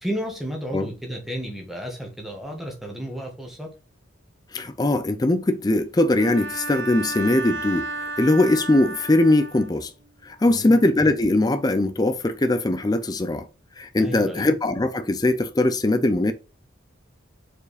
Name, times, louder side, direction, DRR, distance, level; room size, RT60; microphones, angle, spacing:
voice 1, 0.0-3.7 10.5-10.8 14.0-14.5, equal, ahead, 1.6 m, -32 dB
voice 2, 4.5-9.9 10.2-13.5 13.8-16.3, left 2 dB, 20° left, 0.5 m, -21 dB
Bowed string instrument, 6.2-9.9, right 2 dB, 75° right, 0.9 m, -33 dB
4.9 x 4.4 x 4.9 m
head